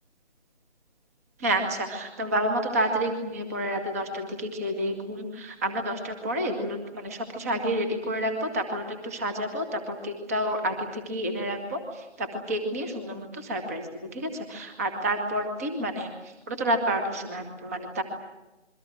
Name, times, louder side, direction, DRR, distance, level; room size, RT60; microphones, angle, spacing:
voice 1, 1.4-18.0, right 1 dB, 15° right, 5 dB, 1.8 m, -29 dB
27.0 x 23.5 x 7.8 m, 1.0 s
figure-of-eight pair, 165°, 35 cm